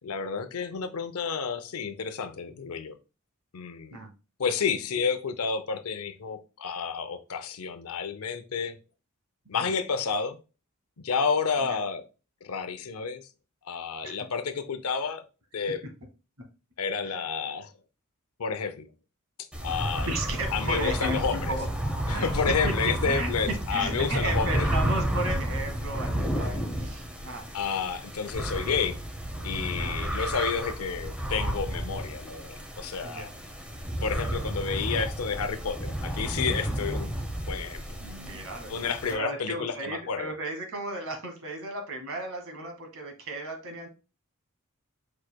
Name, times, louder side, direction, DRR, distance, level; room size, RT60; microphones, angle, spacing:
voice 1, 0.0-3.0 3.5-4.0 4.4-8.8 9.5-10.4 11.0-12.0 12.4-13.2 13.7-15.2 15.5-15.8 16.8-17.7 18.4-18.9 19.6-20.1 20.5-21.5 22.1-24.7 27.5-29.0 29.4-33.3 34.0-37.2 37.5-37.8 38.7-40.3, left 5 dB, 70° left, 0.6 m, -30 dB
sound 1, 19.5-39.1, right 1 dB, 5° right, 0.8 m, -31 dB
voice 2, 20.1-21.7 22.1-22.3 22.6-27.5 29.8-30.0 33.0-33.3 38.0-43.9, right 2 dB, 65° right, 1.4 m, -35 dB
4.8 x 4.7 x 2.2 m
head